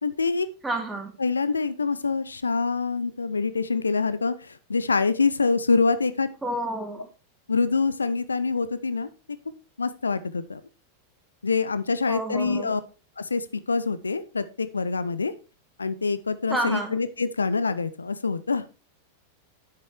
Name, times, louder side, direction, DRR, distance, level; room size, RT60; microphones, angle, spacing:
voice 1, 0.0-0.5 1.2-4.3 4.7-6.3 7.5-9.1 9.8-10.6 11.4-12.8 13.2-15.3 15.8-18.6, left 4 dB, 75° left, 14 dB, 0.7 m, -25 dB
voice 2, 0.6-1.1 6.4-7.1 12.1-12.8 16.5-17.0, right 2 dB, 10° right, 3 dB, 2.7 m, -30 dB
9.7 x 7.6 x 4.4 m, 0.32 s
figure-of-eight pair, 90°, 0 cm